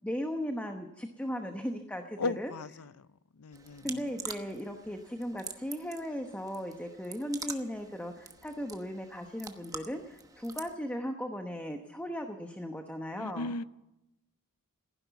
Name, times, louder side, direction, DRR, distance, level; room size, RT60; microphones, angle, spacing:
voice 1, 0.0-2.5 3.8-13.5, equal, 5° left, 1.0 m, -37 dB
voice 2, 2.2-3.1 3.4-4.0 13.2-13.6, left 3 dB, 85° left, 0.6 m, -36 dB
sound 1, 3.5-10.8, right 4 dB, 15° right, 1.0 m, -46 dB
15.5 x 10.5 x 8.2 m
head